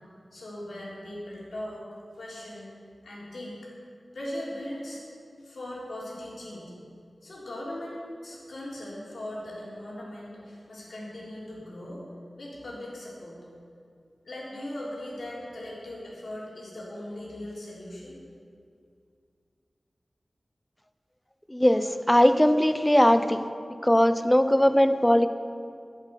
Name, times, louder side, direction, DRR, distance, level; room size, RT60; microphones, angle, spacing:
voice 1, 0.3-1.8 2.1-2.7 3.0-3.7 4.1-5.0 5.4-6.7 7.2-12.0 12.4-13.4 14.2-18.1, left 1 dB, 85° left, -5 dB, 3.6 m, -39 dB
voice 2, 21.5-23.5 23.8-25.3, equal, 10° left, 10 dB, 0.7 m, -20 dB
11.0 x 8.2 x 8.2 m, 2.4 s
cardioid pair, 45°, 0 cm